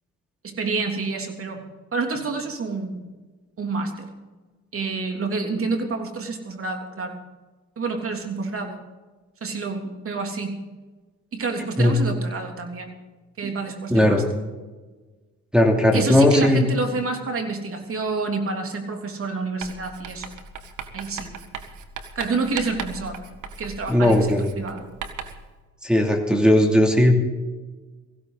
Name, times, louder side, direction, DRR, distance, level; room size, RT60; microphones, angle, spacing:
voice 1, 0.4-1.6 1.9-3.0 3.6-4.1 4.7-7.2 7.8-8.8 9.4-10.6 11.3-12.9 13.4-14.2 15.9-20.3 20.9-21.3 22.1-23.2 23.6-24.9, right 3 dB, 45° right, 4 dB, 3.2 m, -28 dB
voice 2, 13.9-14.2 15.5-16.6 23.9-24.5 25.8-27.1, left 1 dB, 5° right, 2 dB, 2.9 m, -17 dB
Writing, 19.6-25.5, right 6 dB, 75° right, 1.7 m, -38 dB
18.0 x 16.0 x 4.1 m, 1.3 s
cardioid pair, 90°, 30 cm